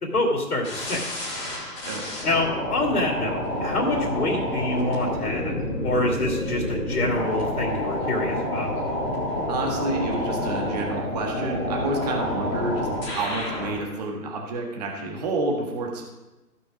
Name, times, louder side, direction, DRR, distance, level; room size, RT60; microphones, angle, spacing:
voice 1, 0.0-1.0 2.2-5.5 5.8-8.7, left 2 dB, 60° left, 0 dB, 2.6 m, -26 dB
sound 1, 0.6-13.8, left 1 dB, 10° left, 1.9 m, -29 dB
voice 2, 9.5-16.0, right 2 dB, 25° right, 0 dB, 1.6 m, -29 dB
14.5 x 6.1 x 5.0 m, 1.1 s
figure-of-eight pair, 155°, 50 cm